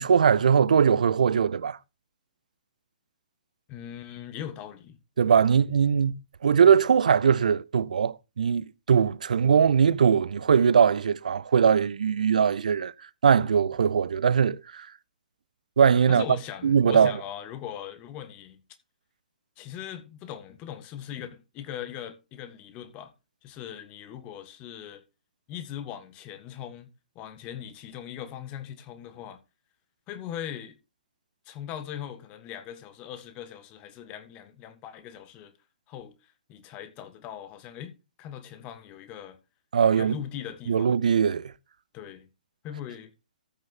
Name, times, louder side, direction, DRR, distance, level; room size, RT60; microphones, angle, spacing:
voice 1, 0.0-1.8 5.2-6.1 6.4-12.9 13.2-14.9 15.8-16.2 16.6-17.1 39.7-40.2 40.7-41.5, right 7 dB, 60° right, 0.5 m, -21 dB
voice 2, 3.7-5.0 16.1-18.6 19.6-23.1 23.4-25.0 25.5-26.9 27.1-29.4 30.1-30.8 31.5-35.5 35.9-36.1 36.5-37.9 38.2-39.4 39.8-41.0 41.9-42.3 42.6-43.1, left 10 dB, 25° left, 1.6 m, -40 dB
14.0 x 6.3 x 4.3 m
figure-of-eight pair, 120°, 5 cm